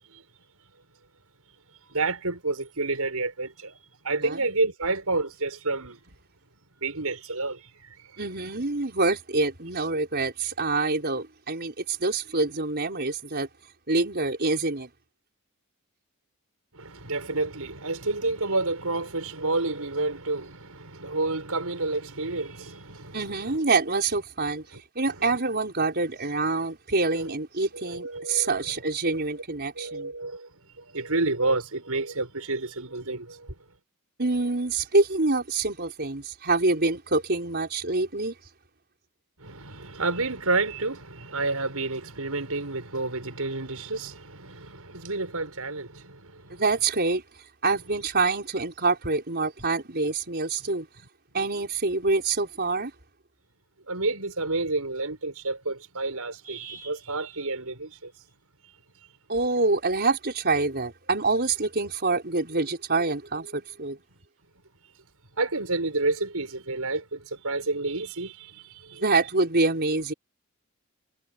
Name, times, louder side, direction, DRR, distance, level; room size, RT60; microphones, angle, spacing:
voice 1, 1.9-3.8 4.0-6.0 6.8-8.2 16.7-23.6 24.7-24.8 27.1-27.3 27.7-28.6 29.1-29.2 29.8-30.5 30.8-33.5 39.4-46.6 53.9-58.1 65.4-69.0, right 3 dB, 85° right, 5.9 m, -30 dB
voice 2, 8.2-13.5 13.9-14.9 23.1-24.7 24.9-30.1 34.2-38.3 46.5-47.2 47.6-50.9 51.3-52.9 59.3-64.0 69.0-70.1, right 3 dB, 50° right, 5.0 m, -26 dB
head